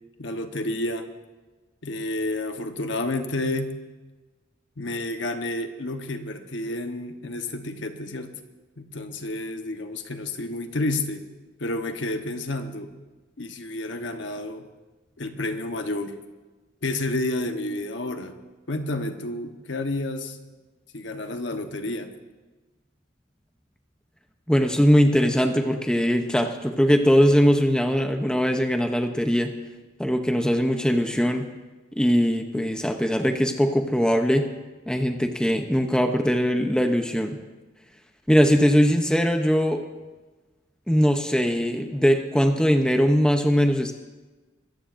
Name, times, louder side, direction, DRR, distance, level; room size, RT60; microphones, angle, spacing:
voice 1, 0.2-1.1 1.8-3.8 4.8-8.4 8.8-11.2 11.6-12.9 13.4-14.7 15.2-16.2 16.8-18.3 18.7-20.4 20.9-22.1, left 2 dB, 65° left, 6 dB, 1.1 m, -30 dB
voice 2, 24.5-29.6 30.0-31.5 31.9-34.5 34.9-37.4 38.3-39.8 40.9-43.9, equal, 5° left, 5 dB, 0.7 m, -21 dB
23.0 x 14.0 x 2.6 m, 1.2 s
head